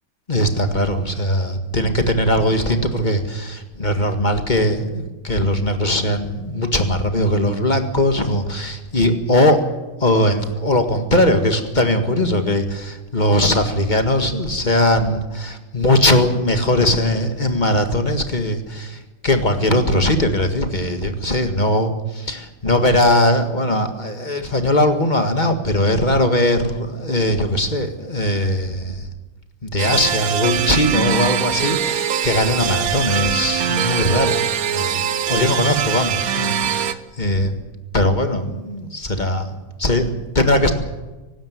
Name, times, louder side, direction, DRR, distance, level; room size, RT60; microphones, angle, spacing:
voice 1, 0.3-9.6 10.0-29.1 29.6-34.4 34.7-35.0 35.3-37.5 37.9-40.7, left 1 dB, 25° left, 7 dB, 1.8 m, -20 dB
sound 1, 29.8-36.9, right 8 dB, 55° right, 1.1 m, -22 dB
24.5 x 12.5 x 9.5 m, 1.1 s
omnidirectional pair, 2.2 m